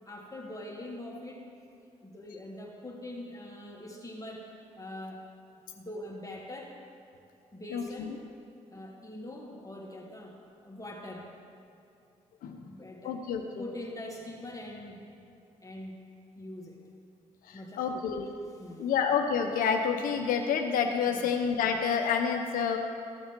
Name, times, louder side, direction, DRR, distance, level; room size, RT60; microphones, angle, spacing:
voice 1, 0.1-1.5 2.0-5.3 5.8-6.8 7.5-8.2 8.7-11.3 12.6-13.2 13.6-15.1 15.6-16.0 16.4-16.8 17.5-18.1 18.6-18.8 21.1-21.4, left 1 dB, 25° left, -2 dB, 1.7 m, -43 dB
voice 2, 7.7-8.2 12.4-12.7 13.0-13.6 17.5-18.3 18.8-22.8, left 6 dB, 80° left, 4 dB, 0.8 m, -29 dB
13.5 x 6.9 x 3.8 m, 2.5 s
hypercardioid pair, 45°, 14 cm